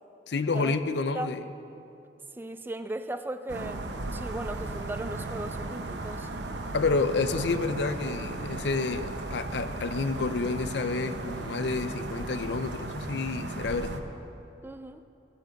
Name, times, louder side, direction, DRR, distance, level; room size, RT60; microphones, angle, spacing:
voice 1, 0.3-1.4 6.7-14.0, left 3 dB, 70° left, 11 dB, 0.5 m, -29 dB
voice 2, 2.4-6.3 14.6-15.0, right 1 dB, 10° right, 10 dB, 0.3 m, -37 dB
sound 1, 3.5-14.0, right 2 dB, 75° right, 0.8 m, -36 dB
15.5 x 6.5 x 6.5 m, 2.8 s
head